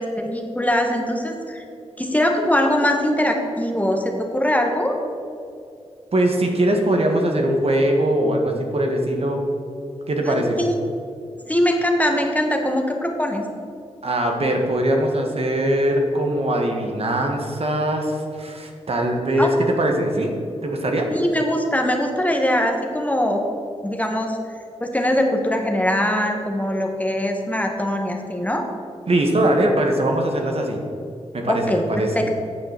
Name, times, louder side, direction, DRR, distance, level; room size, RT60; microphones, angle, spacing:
voice 1, 0.0-1.6 2.0-5.0 10.2-10.7 11.5-13.5 19.4-19.5 21.1-23.4 23.8-24.4 24.8-28.7 31.4-32.3, left 1 dB, 10° left, 2 dB, 1.4 m, -22 dB
voice 2, 6.1-9.4 10.1-10.6 14.0-20.3 20.6-21.1 29.1-30.8 31.3-32.3, right 1 dB, 55° right, 2 dB, 1.6 m, -21 dB
8.8 x 6.9 x 6.6 m, 2.4 s
cardioid pair, 55°, 12 cm